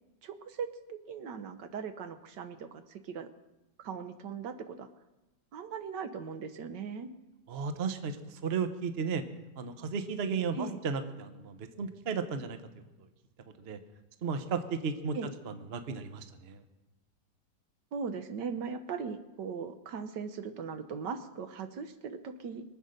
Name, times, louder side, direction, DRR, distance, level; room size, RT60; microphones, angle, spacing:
voice 1, 0.2-3.3 3.8-4.9 5.5-7.1 10.5-10.8 15.1-15.3 17.9-22.6, right 6 dB, 65° right, 9 dB, 1.4 m, -39 dB
voice 2, 7.5-9.2 9.6-12.6 13.0-13.1 13.6-13.8 14.2-15.2 15.4-16.6, right 5 dB, 40° right, 9 dB, 0.9 m, -34 dB
23.0 x 8.2 x 6.5 m, 1.0 s
omnidirectional pair, 2.1 m